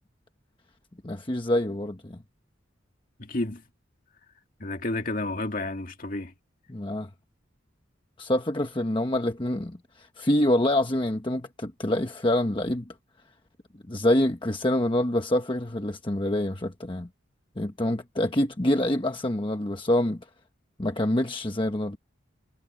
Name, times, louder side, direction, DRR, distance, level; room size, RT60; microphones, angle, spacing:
voice 1, 1.0-2.2 6.7-7.1 8.2-12.9 13.9-17.1 17.6-20.2 20.8-22.0, left 1 dB, 25° left, 1.1 m, -26 dB
voice 2, 3.2-3.6 4.6-6.3, left 2 dB, 45° left, 2.3 m, -31 dB
head